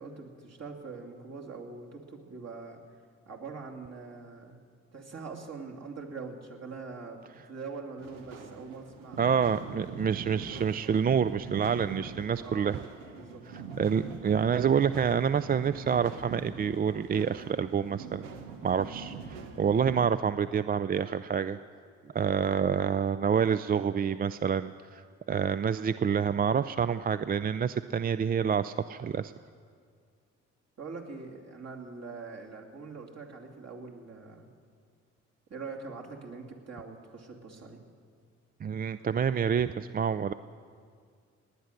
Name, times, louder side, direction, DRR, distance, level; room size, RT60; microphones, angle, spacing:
voice 1, 0.0-2.8 3.3-4.6 4.9-7.2 7.5-9.2 12.4-12.8 13.2-13.4 22.0-22.3 30.8-34.5 35.5-37.8, right 4 dB, 45° right, 0 dB, 2.7 m, -43 dB
sound 1, 8.0-20.1, right 5 dB, 85° right, 1.1 m, -43 dB
voice 2, 9.2-12.8 13.8-18.3 18.6-21.6 22.1-25.0 25.3-29.3 38.6-40.3, right 7 dB, 25° right, 13 dB, 0.4 m, -27 dB
19.0 x 9.9 x 6.6 m, 2.1 s
hypercardioid pair, 45°, 36 cm